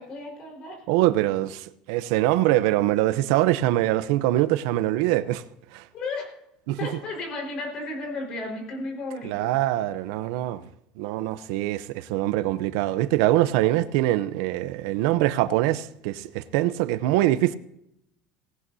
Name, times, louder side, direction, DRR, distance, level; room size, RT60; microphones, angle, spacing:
voice 1, 0.0-0.8 5.9-6.3 6.8-9.5, left 2 dB, 40° left, 4.7 m, -34 dB
voice 2, 0.9-5.4 5.7-5.8 6.7-6.9 9.2-10.7 11.0-17.6, right 15 dB, 75° right, 0.7 m, -23 dB
18.5 x 17.0 x 2.8 m
cardioid pair, 170°, 2 cm